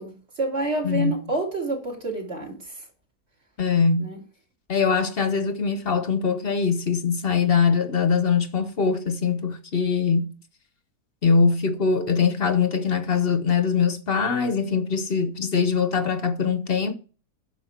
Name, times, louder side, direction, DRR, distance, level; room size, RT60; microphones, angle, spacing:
voice 1, 0.0-2.6 4.0-4.2, right 2 dB, 45° right, 3.3 m, -28 dB
voice 2, 3.6-4.1 4.7-10.3 11.2-16.9, left 5 dB, 45° left, 1.0 m, -22 dB
9.6 x 6.3 x 5.9 m
omnidirectional pair, 1.7 m